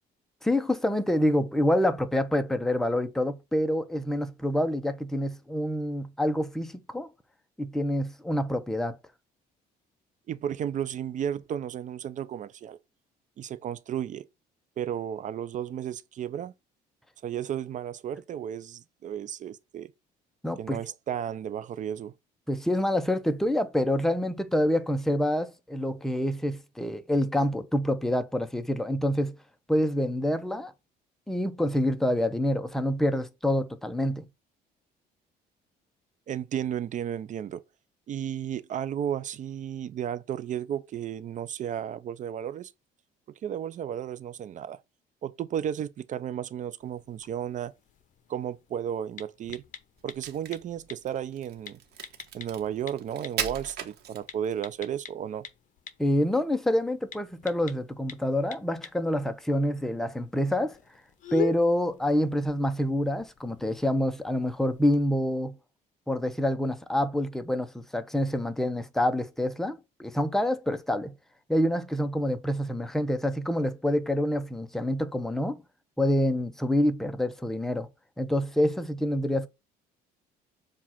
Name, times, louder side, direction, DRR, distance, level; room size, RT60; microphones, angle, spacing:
voice 1, 0.4-7.1 7.6-9.0 20.4-20.8 22.5-29.4 29.7-30.7 31.3-34.2 56.0-60.8 61.3-65.6 66.1-71.1 71.5-75.6 76.0-77.9 78.2-79.5, left 1 dB, ahead, 0.7 m, -27 dB
voice 2, 10.3-12.8 13.4-14.3 14.8-16.5 17.2-19.9 20.6-22.1 36.3-37.6 38.1-42.7 43.4-44.8 45.2-47.7 48.3-49.6 50.0-51.8 52.3-55.5, right 9 dB, 45° right, 0.5 m, -33 dB
sound 1, 46.8-65.1, left 8 dB, 50° left, 0.9 m, -45 dB
Crack, 50.0-54.6, right 9 dB, 75° right, 1.2 m, -38 dB
7.3 x 2.5 x 5.7 m
cardioid pair, 110°, 17 cm